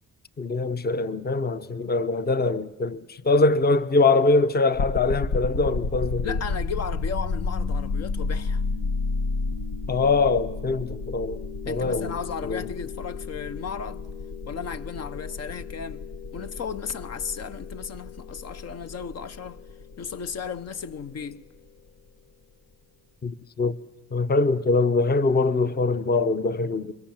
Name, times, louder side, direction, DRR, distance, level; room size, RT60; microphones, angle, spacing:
voice 1, 0.4-6.4 9.9-12.2 12.4-12.7 23.2-23.8 24.1-26.9, left 3 dB, 30° left, 0.9 m, -23 dB
sound 1, 4.8-21.7, left 3 dB, 85° left, 1.3 m, -32 dB
voice 2, 6.2-8.6 11.7-14.1 14.5-16.1 16.3-19.6 20.0-21.4, left 6 dB, 55° left, 1.0 m, -35 dB
29.5 x 23.5 x 7.3 m
cardioid pair, 90°, 30 cm